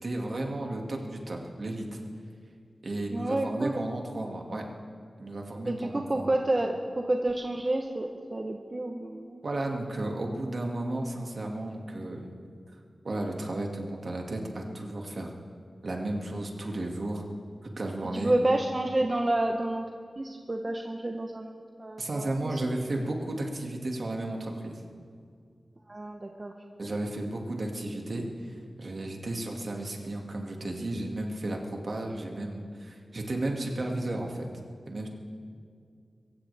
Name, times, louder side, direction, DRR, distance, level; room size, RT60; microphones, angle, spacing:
voice 1, 0.0-2.0 2.8-4.6 5.2-6.4 9.4-12.3 13.0-15.3 15.8-17.2 17.6-18.3 22.0-24.8 26.8-34.5 34.9-35.1, right 1 dB, 55° right, 1 dB, 2.1 m, -33 dB
voice 2, 3.1-3.8 5.7-9.4 18.1-19.8 20.2-22.6 25.9-26.5, right 1 dB, 30° right, 2 dB, 0.9 m, -29 dB
23.5 x 15.5 x 3.5 m, 2.2 s
wide cardioid pair, 105°, 0 cm